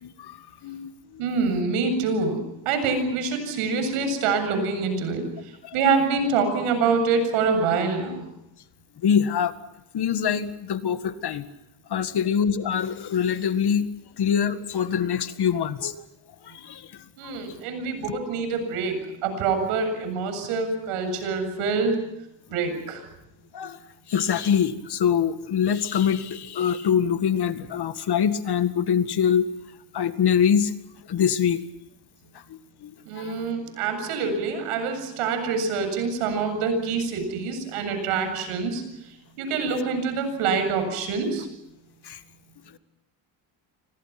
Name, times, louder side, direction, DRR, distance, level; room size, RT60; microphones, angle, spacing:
voice 1, 0.0-1.2 5.6-5.7 9.0-9.5 9.9-11.5 11.9-13.9 14.2-15.9 16.4-17.3 23.5-23.8 24.1-29.5 29.9-30.7 31.1-31.6 32.5-33.4 42.0-42.2, left 8 dB, 50° left, 10 dB, 2.0 m, -24 dB
voice 2, 1.2-5.2 5.7-8.3 17.2-22.0 22.5-23.0 33.1-38.8 39.4-41.5, right 4 dB, 85° right, 8 dB, 7.8 m, -25 dB
29.5 x 25.5 x 6.0 m, 0.84 s
cardioid pair, 100°, 50 cm